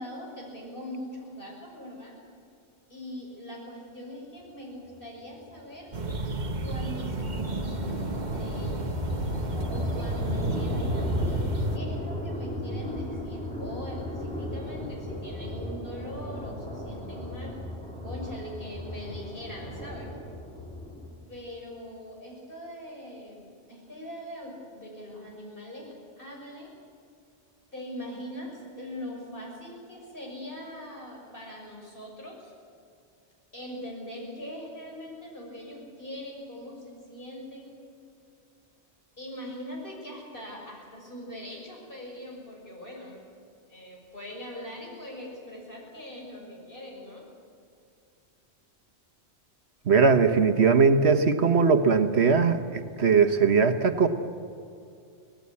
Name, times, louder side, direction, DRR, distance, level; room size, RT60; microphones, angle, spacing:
voice 1, 0.0-2.1 2.9-5.9 6.6-9.0 9.7-11.5 11.7-17.6 18.0-20.1 21.3-26.7 27.7-32.5 33.5-37.7 39.2-43.2 43.7-47.2, left 1 dB, 55° left, -2 dB, 6.8 m, -41 dB
sound 1, 5.2-21.4, left 1 dB, 5° left, 4.2 m, -37 dB
sound 2, 5.9-11.8, right 1 dB, 45° right, 1.4 m, -30 dB
voice 2, 49.9-54.1, right 5 dB, 75° right, 7 dB, 1.5 m, -20 dB
25.5 x 18.0 x 8.6 m, 2.5 s
omnidirectional pair, 1.1 m